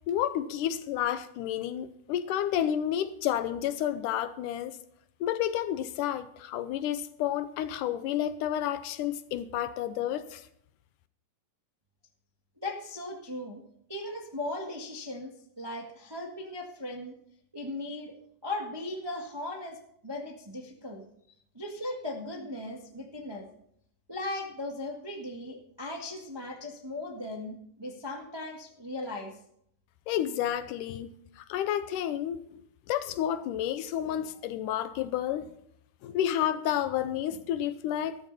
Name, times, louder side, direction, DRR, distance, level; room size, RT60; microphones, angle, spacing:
voice 1, 0.1-4.8 5.2-10.5 30.1-32.6 32.9-35.5 36.0-38.2, left 11 dB, 80° left, 2.1 m, -30 dB
voice 2, 12.6-13.6 13.9-17.1 17.5-18.1 18.4-19.8 20.0-23.5 24.1-29.3, left 2 dB, 25° right, 0.5 m, -38 dB
13.5 x 13.5 x 4.1 m
omnidirectional pair, 3.9 m